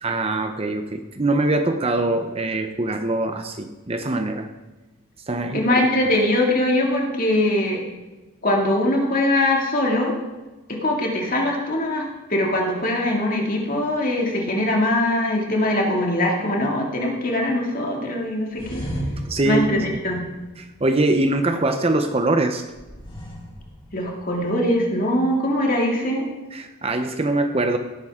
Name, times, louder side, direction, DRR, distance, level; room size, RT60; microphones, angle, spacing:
voice 1, 0.0-4.5 5.3-5.6 19.3-19.8 20.6-22.6 26.5-27.8, right 2 dB, 25° right, 7 dB, 0.7 m, -23 dB
voice 2, 5.5-7.8 8.4-10.1 10.7-18.9 19.4-20.2 23.9-26.2, left 1 dB, 40° left, 0 dB, 2.2 m, -22 dB
sound 1, 18.5-21.2 22.7-24.4, equal, 20° left, 3.3 m, -35 dB
17.5 x 8.8 x 3.6 m, 1.1 s
head